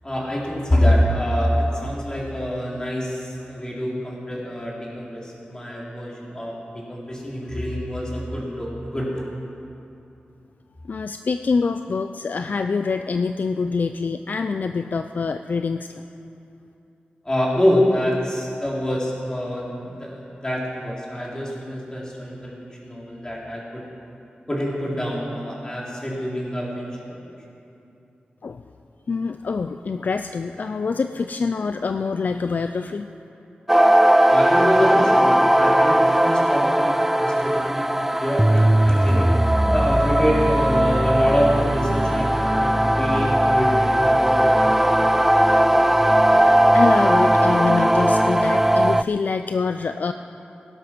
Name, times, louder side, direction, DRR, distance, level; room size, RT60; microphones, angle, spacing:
voice 1, 0.0-6.5 6.9-9.2 17.2-22.5 22.8-23.8 24.5-27.3 34.3-44.8, equal, 25° left, -4 dB, 3.9 m, -25 dB
voice 2, 10.8-16.1 28.4-28.6 29.1-33.1 46.3-50.1, left 4 dB, 60° left, 8 dB, 0.4 m, -25 dB
sound 1, 33.7-49.0, right 1 dB, 10° right, 0.3 m, -18 dB
17.0 x 11.0 x 6.1 m, 2.8 s
wide cardioid pair, 70°, 3 cm